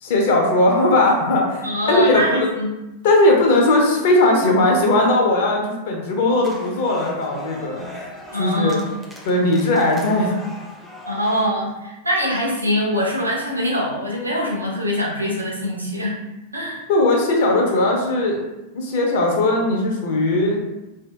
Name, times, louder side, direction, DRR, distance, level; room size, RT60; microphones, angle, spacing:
voice 1, 0.0-2.5 3.0-7.9 8.4-8.8 9.2-10.5 16.9-18.4 18.7-20.6, left 2 dB, 55° left, 0 dB, 0.5 m, -18 dB
voice 2, 1.6-2.7 8.3-8.9 11.1-16.2 16.5-16.8, equal, 85° right, -3 dB, 0.6 m, -23 dB
sound 1, 6.4-11.5, left 1 dB, 5° right, 0.4 m, -39 dB
2.6 x 2.1 x 2.2 m, 0.97 s
figure-of-eight pair, 90°, 0 cm